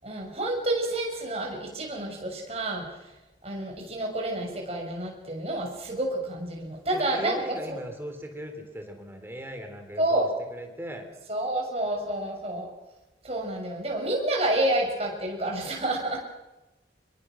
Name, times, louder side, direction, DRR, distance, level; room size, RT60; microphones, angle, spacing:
voice 1, 0.0-3.1 3.4-7.8 10.0-10.3 11.3-12.7 13.2-16.2, right 1 dB, 35° right, 0 dB, 6.6 m, -29 dB
voice 2, 6.9-10.2 10.5-11.1, equal, 15° right, 5 dB, 3.6 m, -38 dB
26.5 x 22.0 x 6.4 m, 1.0 s
head